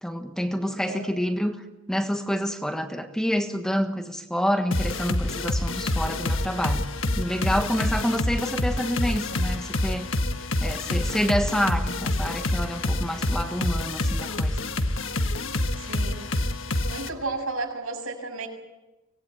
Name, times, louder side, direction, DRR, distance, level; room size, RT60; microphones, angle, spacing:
voice 1, 0.0-1.6 1.9-6.9 7.2-10.1 10.6-14.6, equal, 5° left, 5 dB, 1.4 m, -27 dB
voice 2, 0.6-1.1 15.8-16.2 16.9-18.5, right 3 dB, 80° right, 3 dB, 7.0 m, -33 dB
sound 1, 4.7-17.1, left 1 dB, 65° left, 1.6 m, -27 dB
24.5 x 19.5 x 9.2 m, 1.1 s
head